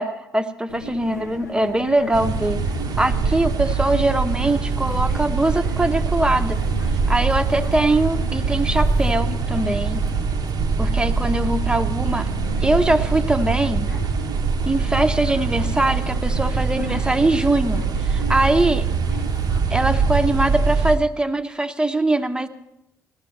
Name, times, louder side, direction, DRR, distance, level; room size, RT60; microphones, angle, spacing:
voice 1, 0.0-2.6 3.0-6.6 7.1-10.0 10.8-12.3 12.6-13.9 14.7-18.9 19.7-22.5, right 2 dB, 10° right, 9 dB, 0.9 m, -22 dB
sound 1, 0.7-19.6, left 2 dB, 85° left, 0.6 m, -39 dB
sound 2, 2.1-21.0, right 5 dB, 45° right, 0.8 m, -23 dB
19.0 x 13.5 x 3.2 m, 0.85 s
figure-of-eight pair, 45°, 9 cm